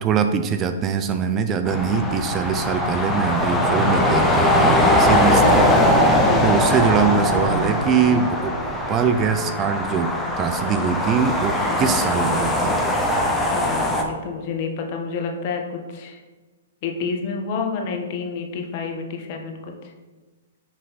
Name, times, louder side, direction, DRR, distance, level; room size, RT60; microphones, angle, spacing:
voice 1, 0.0-5.7 6.4-8.5 8.9-12.8, right 6 dB, 25° right, 8 dB, 0.4 m, -22 dB
sound 1, 1.7-14.0, left 1 dB, 10° left, 0.9 m, -20 dB
voice 2, 3.8-4.3 5.2-5.5 6.1-6.5 11.7-11.9 13.5-16.2 16.8-19.9, left 5 dB, 45° left, 3 dB, 1.1 m, -30 dB
5.6 x 5.3 x 4.0 m, 1.3 s
hypercardioid pair, 130°, 0 cm